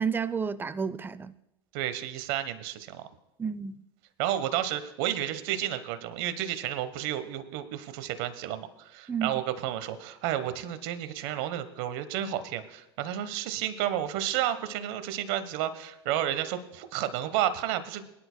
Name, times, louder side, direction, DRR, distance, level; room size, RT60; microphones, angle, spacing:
voice 1, 0.0-1.3 3.4-3.8 9.1-9.4, right 6 dB, 15° right, 0.5 m, -31 dB
voice 2, 1.7-3.1 4.2-18.1, right 11 dB, 60° right, 1.2 m, -31 dB
22.5 x 10.5 x 2.2 m
hypercardioid pair, 90°, 14 cm